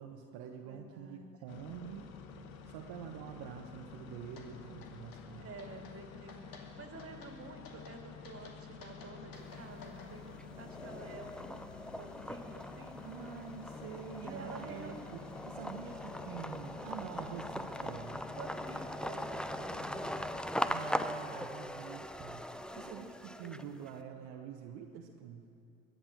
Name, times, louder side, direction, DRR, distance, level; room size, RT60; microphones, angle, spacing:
voice 1, 0.0-2.1 2.6-5.5 13.0-18.2 20.6-25.5, right 8 dB, 65° right, 3 dB, 1.2 m, -46 dB
voice 2, 0.6-1.3 5.4-13.1 14.2-14.9 18.4-20.4 22.7-23.1 23.4-23.6, right 3 dB, 35° right, 3 dB, 2.5 m, -50 dB
sound 1, 1.5-20.4, left 5 dB, 80° left, 1.1 m, -50 dB
sound 2, 4.4-4.5 4.8-5.2 5.6-6.0 6.3-6.7 7.0-7.3 7.6-8.0 8.2-10.1, left 4 dB, 55° left, 2.6 m, -54 dB
sound 3, 9.4-10.0 10.4-23.9, equal, ahead, 0.7 m, -40 dB
22.5 x 7.9 x 7.6 m, 2.7 s
hypercardioid pair, 55°, 41 cm